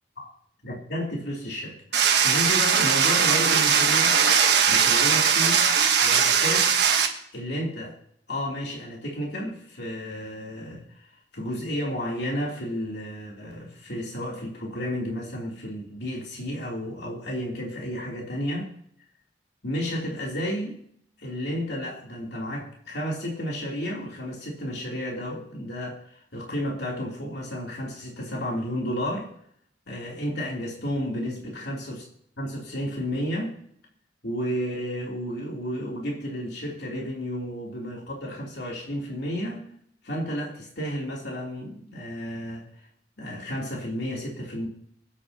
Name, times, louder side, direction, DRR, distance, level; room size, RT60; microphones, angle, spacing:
voice 1, 0.6-4.2 4.7-5.7 6.0-6.8 7.3-8.0 8.3-10.8 11.3-18.7 19.6-20.8 21.2-29.3 29.9-32.0 32.4-33.6 34.2-39.7 40.0-42.7 43.2-44.7, equal, 65° left, -2 dB, 3.3 m, -32 dB
sound 1, 1.9-7.1, right 7 dB, 65° right, 1.4 m, -20 dB
24.0 x 8.8 x 2.9 m, 0.66 s
head